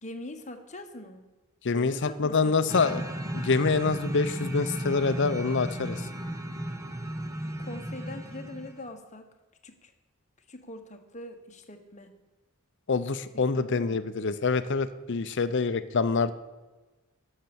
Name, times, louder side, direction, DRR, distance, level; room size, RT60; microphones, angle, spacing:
voice 1, 0.0-1.3 1.7-3.0 7.6-9.3 9.6-9.9 10.5-12.1 13.3-14.0, left 1 dB, 35° left, 6 dB, 1.1 m, -43 dB
voice 2, 1.6-3.0 3.3-6.0 12.9-16.3, left 4 dB, 55° left, 13 dB, 0.6 m, -26 dB
sound 1, 2.7-8.9, right 1 dB, 15° right, 0.9 m, -35 dB
12.0 x 6.7 x 7.0 m, 1.2 s
head